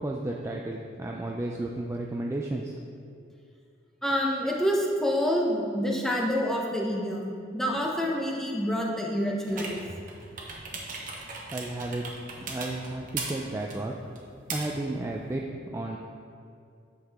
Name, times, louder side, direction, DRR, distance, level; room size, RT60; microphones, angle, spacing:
voice 1, 0.0-2.7 11.5-12.0 12.5-13.9 14.5-15.5 15.7-16.0, right 2 dB, 15° right, -1 dB, 0.4 m, -33 dB
voice 2, 4.0-9.8, equal, 5° left, -2 dB, 0.9 m, -27 dB
sound 1, 9.5-15.4, right 3 dB, 45° right, 1.1 m, -39 dB
8.4 x 5.7 x 3.5 m, 2.4 s
head